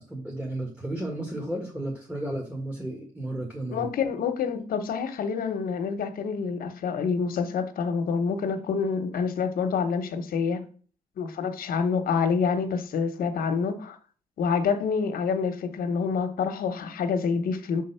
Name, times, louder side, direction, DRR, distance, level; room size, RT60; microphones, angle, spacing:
voice 1, 0.0-3.9, right 1 dB, 10° right, 1.6 m, -33 dB
voice 2, 3.7-10.6 11.2-14.0 14.4-17.8, left 5 dB, 90° left, 0.9 m, -27 dB
6.3 x 3.8 x 5.6 m
cardioid pair, 90°, 15 cm